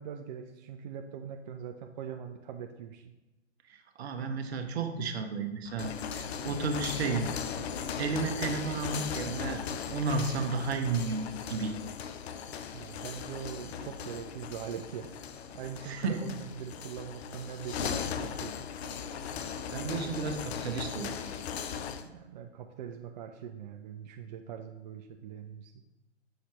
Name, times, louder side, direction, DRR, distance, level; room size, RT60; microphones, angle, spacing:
voice 1, 0.0-3.1 12.7-15.2 15.5-18.5 22.0-25.7, right 8 dB, 40° right, 4 dB, 0.4 m, -42 dB
voice 2, 3.7-7.3 8.0-9.6 9.9-11.8 15.8-16.3 19.7-21.2, right 4 dB, 60° right, 6 dB, 0.9 m, -33 dB
sound 1, 5.6-22.1, left 7 dB, 60° left, 0.6 m, -38 dB
6.4 x 5.7 x 3.0 m, 1.1 s
figure-of-eight pair, 115°, 36 cm